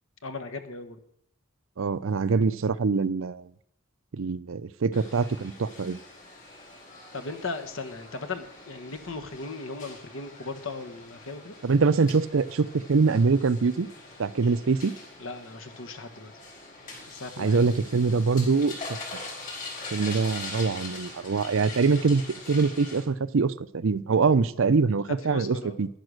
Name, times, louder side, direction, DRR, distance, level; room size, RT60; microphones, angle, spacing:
voice 1, 0.2-1.0 7.1-11.5 15.2-16.3 17.1-17.7 25.1-25.8, left 3 dB, 70° left, 7 dB, 1.5 m, -37 dB
voice 2, 1.8-3.5 4.1-6.0 11.6-13.9 14.2-14.9 17.4-18.8 19.9-22.2 22.5-25.9, right 4 dB, 70° right, 16 dB, 0.6 m, -24 dB
sound 1, 4.9-23.0, left 3 dB, 40° left, 5.1 m, -43 dB
10.5 x 10.5 x 6.5 m, 0.71 s
head